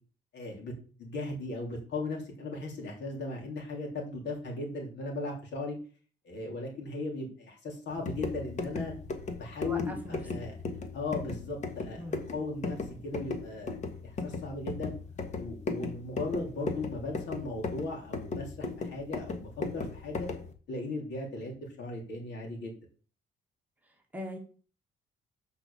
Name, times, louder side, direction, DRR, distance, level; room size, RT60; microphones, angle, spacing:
voice 1, 0.3-0.7 1.0-5.7 6.2-8.9 9.3-10.6 10.9-12.8 13.0-13.7 14.0-14.9 15.4-20.3 20.7-22.8, left 2 dB, 75° left, 0 dB, 3.3 m, -37 dB
sound 1, 7.9-20.5, left 3 dB, 40° left, 1.3 m, -37 dB
voice 2, 9.7-10.2 12.0-12.2 24.1-24.4, equal, 10° right, 1 dB, 1.7 m, -39 dB
6.8 x 5.3 x 7.1 m, 0.40 s
cardioid pair, 160°, 18 cm